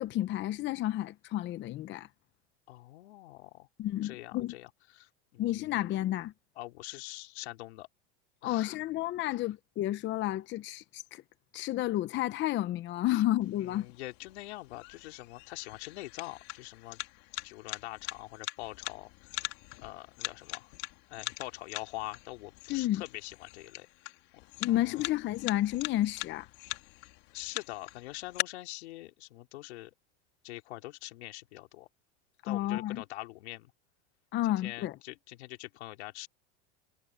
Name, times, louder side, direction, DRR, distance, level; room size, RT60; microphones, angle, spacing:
voice 1, 0.0-2.1 3.8-4.5 5.4-6.3 8.4-11.2 11.5-13.9 22.7-23.0 24.6-26.5 32.5-33.0 34.3-35.0, left 14 dB, 35° left, 0.8 m, -31 dB
voice 2, 2.7-3.7 4.0-5.7 6.6-7.9 8.4-8.8 13.1-13.2 13.6-17.0 17.4-19.4 19.8-20.7 21.1-23.9 24.7-25.1 27.3-29.9 30.4-31.9 32.4-33.7 34.6-36.3, left 18 dB, 80° left, 3.2 m, -44 dB
sound 1, 13.4-28.4, left 23 dB, 60° left, 2.3 m, -42 dB
supercardioid pair, 135°, 32 cm